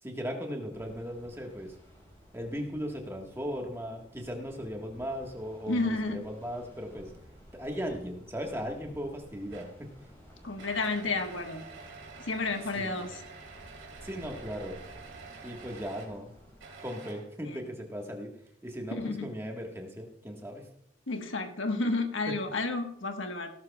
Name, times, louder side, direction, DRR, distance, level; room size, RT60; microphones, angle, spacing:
voice 1, 0.0-1.8 2.3-7.1 7.5-10.1 12.7-13.1 14.0-14.8 15.4-16.3 16.8-18.3 18.6-20.7 22.2-22.3, equal, 15° right, 1 dB, 1.5 m, -37 dB
sound 1, 0.7-16.7, equal, 10° left, 5.4 m, -54 dB
voice 2, 5.7-6.2 10.4-11.6 12.2-13.2 18.9-19.3 21.1-23.5, left 3 dB, 85° left, 5 dB, 1.4 m, -31 dB
sound 2, 9.5-9.8 10.6-16.1 16.6-17.5, right 4 dB, 85° right, 3.4 m, -48 dB
17.0 x 12.5 x 2.4 m, 0.71 s
head